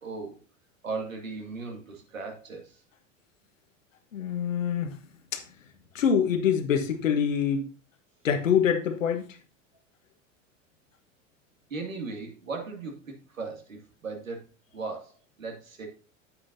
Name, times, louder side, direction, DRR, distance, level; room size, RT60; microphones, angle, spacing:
voice 1, 0.0-0.4 0.8-2.8 11.7-12.9 13.3-14.4 14.7-15.1 15.4-15.9, right 4 dB, 85° right, 2.3 m, -37 dB
voice 2, 4.1-5.0 5.3-5.4 5.9-7.7 8.2-9.2, left 7 dB, 80° left, 1.4 m, -25 dB
8.7 x 8.3 x 2.7 m
hypercardioid pair, 80°, 39 cm